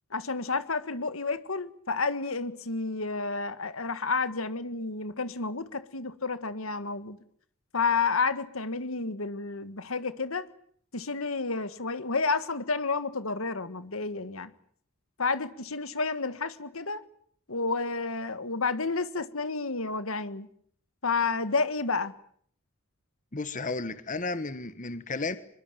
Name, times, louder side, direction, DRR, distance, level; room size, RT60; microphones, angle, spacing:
voice 1, 0.1-7.2 7.7-10.5 10.9-14.5 15.2-17.0 17.5-20.5 21.0-22.1, left 4 dB, 75° left, 1.7 m, -30 dB
voice 2, 23.3-25.4, left 3 dB, 35° left, 1.3 m, -33 dB
25.5 x 22.0 x 9.2 m
head